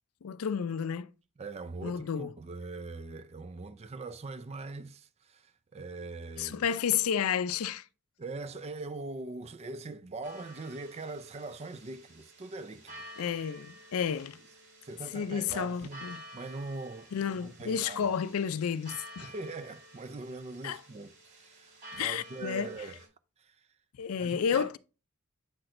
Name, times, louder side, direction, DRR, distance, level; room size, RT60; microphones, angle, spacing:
voice 1, 0.2-1.1 1.8-2.3 6.4-7.8 13.2-14.4 15.1-16.2 17.1-19.3 20.6-20.8 21.9-22.7 24.0-24.8, left 7 dB, 75° left, 0.4 m, -31 dB
voice 2, 1.4-6.6 8.2-13.1 14.8-16.0 16.3-17.1 17.4-18.1 19.2-23.0 23.4-23.6 24.2-24.7, right 3 dB, 30° right, 0.4 m, -42 dB
sound 1, 10.2-23.1, equal, 55° right, 2.5 m, -51 dB
7.8 x 5.9 x 2.5 m
head